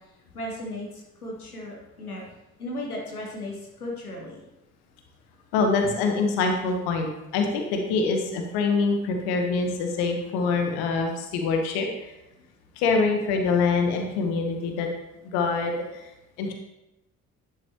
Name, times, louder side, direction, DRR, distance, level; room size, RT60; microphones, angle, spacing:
voice 1, 0.0-2.2 2.6-4.4, left 1 dB, 85° left, -2 dB, 1.1 m, -36 dB
voice 2, 5.5-12.1 12.8-14.9 15.3-16.1 16.4-16.5, left 4 dB, 60° left, 3 dB, 1.1 m, -25 dB
10.5 x 6.1 x 2.9 m, 0.92 s
figure-of-eight pair, 50°, 43 cm